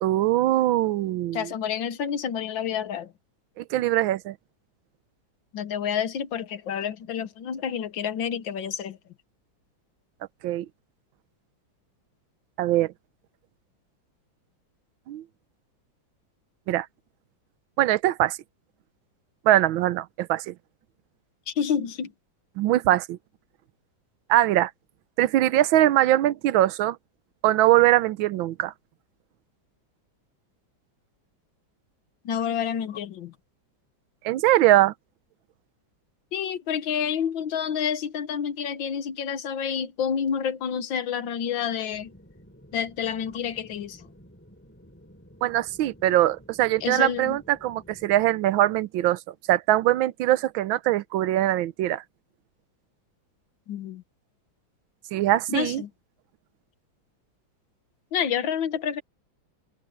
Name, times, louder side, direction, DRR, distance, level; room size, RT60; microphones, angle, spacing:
voice 1, 0.0-1.5 3.6-4.3 10.4-10.7 12.6-12.9 15.1-15.2 16.7-16.9 17.8-18.4 19.4-20.5 22.6-23.2 24.3-24.7 25.2-27.0 27.4-28.7 34.2-34.9 45.4-49.2 49.5-52.0 55.1-55.8, right 14 dB, 85° right, 1.5 m, -22 dB
voice 2, 1.3-3.1 5.5-9.0 21.5-22.1 32.3-33.3 36.3-42.1 42.7-44.0 46.8-47.4 53.7-54.0 55.5-55.9 58.1-59.0, left 8 dB, 75° left, 1.8 m, -29 dB
sound 1, 41.9-48.3, equal, 5° left, 6.9 m, -52 dB
open air
omnidirectional pair, 2.1 m